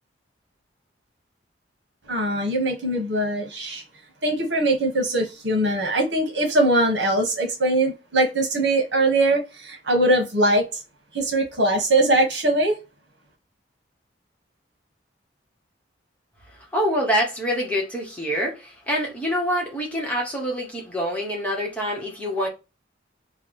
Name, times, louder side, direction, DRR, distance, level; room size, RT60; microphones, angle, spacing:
voice 1, 2.1-3.8 4.2-10.8 11.1-12.7, right 1 dB, 70° right, 1.4 m, -21 dB
voice 2, 16.7-22.5, equal, 10° left, 1.1 m, -26 dB
3.3 x 2.3 x 4.3 m
head